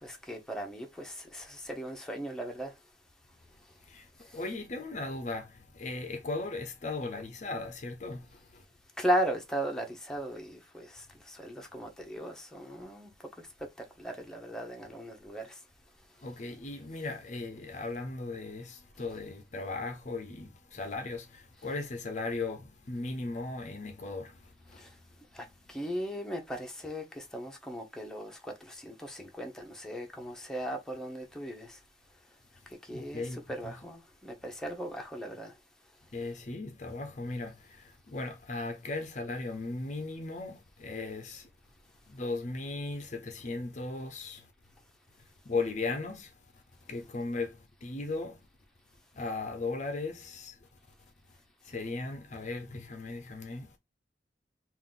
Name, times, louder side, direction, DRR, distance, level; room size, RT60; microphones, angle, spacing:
voice 1, 0.0-2.7 4.3-4.4 9.0-13.1 14.0-15.6 24.8-24.9 25.3-31.8 32.8-35.5, equal, 5° left, 0.8 m, -37 dB
voice 2, 3.8-8.6 16.2-24.9 32.9-33.7 36.1-41.5 42.1-44.5 45.5-46.6 46.9-48.4 49.1-50.7 51.6-53.8, left 3 dB, 40° left, 0.6 m, -37 dB
3.8 x 2.5 x 3.7 m
head